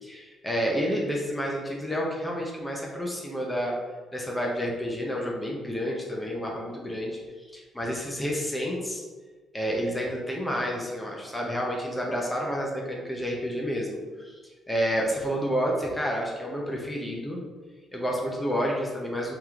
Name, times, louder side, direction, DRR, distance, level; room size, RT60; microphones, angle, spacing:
voice 1, 0.0-3.7 4.1-9.0 9.5-17.4 17.9-19.3, equal, 10° left, -2 dB, 0.7 m, -30 dB
3.3 x 3.0 x 3.6 m, 1.4 s
cardioid pair, 90°, 0 cm